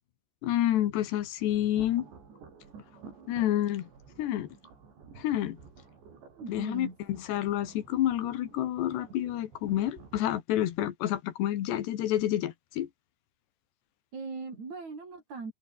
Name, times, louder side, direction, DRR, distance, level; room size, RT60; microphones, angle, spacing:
voice 1, 0.4-2.1 3.3-3.9 4.2-4.6 5.2-5.6 6.5-12.9, left 12 dB, 80° left, 3.7 m, -29 dB
sound 1, 1.4-10.3, right 5 dB, 85° right, 8.4 m, -52 dB
voice 2, 6.4-6.9 14.1-15.5, right 4 dB, 40° right, 6.8 m, -39 dB
omnidirectional pair, 4.9 m